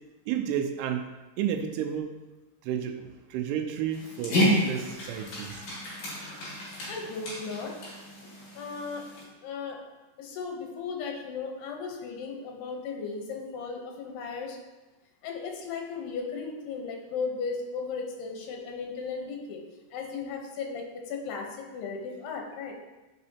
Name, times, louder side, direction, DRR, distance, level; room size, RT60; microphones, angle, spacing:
voice 1, 0.3-1.1 1.4-2.2 2.6-5.6, right 9 dB, 80° right, 5 dB, 2.7 m, -31 dB
Dog, 3.9-9.2, left 1 dB, 60° left, 3.4 m, -31 dB
voice 2, 6.9-7.8 8.5-9.1 9.4-9.8 10.2-14.6 15.2-19.6 19.9-22.7, left 5 dB, 80° left, 1 dB, 3.0 m, -36 dB
11.0 x 5.3 x 2.8 m, 1.1 s
omnidirectional pair, 4.8 m